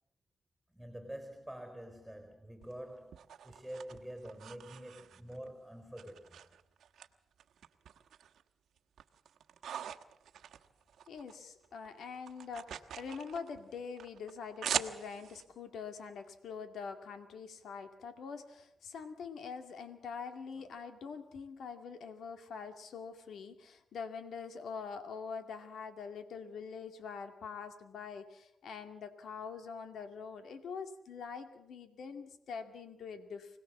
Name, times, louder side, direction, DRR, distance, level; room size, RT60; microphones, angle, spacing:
voice 1, 0.7-6.5 20.5-20.7, right 1 dB, ahead, 5 dB, 4.1 m, -47 dB
sound 1, 2.6-5.5 6.0-7.1 7.4-8.4 8.8-11.4 11.6-15.4, right 9 dB, 85° right, 1.2 m, -42 dB
voice 2, 11.1-33.6, left 5 dB, 80° left, 8 dB, 2.2 m, -44 dB
25.5 x 18.5 x 7.3 m, 0.76 s
cardioid pair, 85°, 0 cm